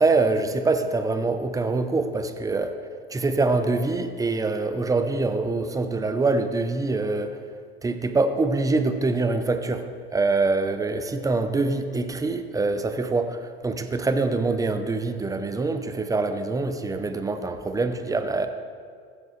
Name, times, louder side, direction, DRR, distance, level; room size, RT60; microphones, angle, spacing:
voice 1, 0.0-2.8 3.1-7.4 7.8-9.9 10.1-18.5, right 3 dB, 10° right, 8 dB, 0.7 m, -24 dB
15.0 x 8.0 x 3.3 m, 2.1 s
hypercardioid pair, 80°, 31 cm